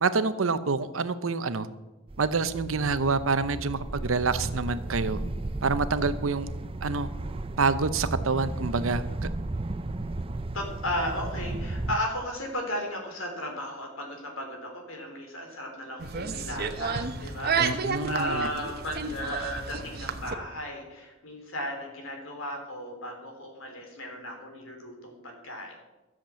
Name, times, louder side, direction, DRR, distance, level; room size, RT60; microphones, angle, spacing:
voice 1, 0.0-1.7 2.2-5.2 5.6-6.5 6.8-7.1 7.6-9.0 17.6-18.5, right 4 dB, 85° right, 12 dB, 0.8 m, -27 dB
sound 1, 2.1-12.0, right 2 dB, 25° right, 0.5 m, -34 dB
voice 2, 10.5-25.7, equal, 85° left, 2 dB, 3.6 m, -35 dB
sound 2, 16.0-20.3, right 5 dB, 50° right, 1.0 m, -31 dB
13.0 x 7.5 x 7.5 m, 1.1 s
head